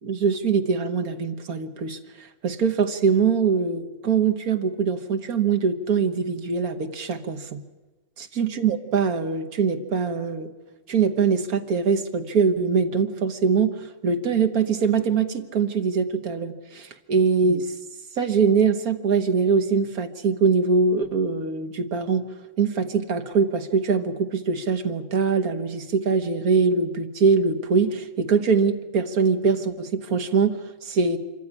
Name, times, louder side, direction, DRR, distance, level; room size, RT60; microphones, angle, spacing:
voice 1, 0.0-7.6 8.2-10.5 10.9-17.7 18.2-22.3 22.6-31.2, right 5 dB, 85° right, 8 dB, 1.8 m, -23 dB
25.5 x 14.5 x 9.8 m, 1.2 s
omnidirectional pair, 1.5 m